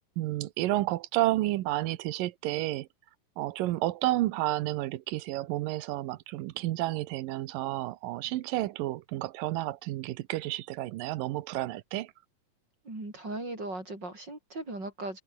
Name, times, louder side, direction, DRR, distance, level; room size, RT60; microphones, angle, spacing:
voice 1, 0.2-2.9 3.4-12.1, right 16 dB, 90° right, 2.6 m, -31 dB
voice 2, 12.8-15.2, right 2 dB, 30° right, 7.4 m, -38 dB
omnidirectional pair, 3.8 m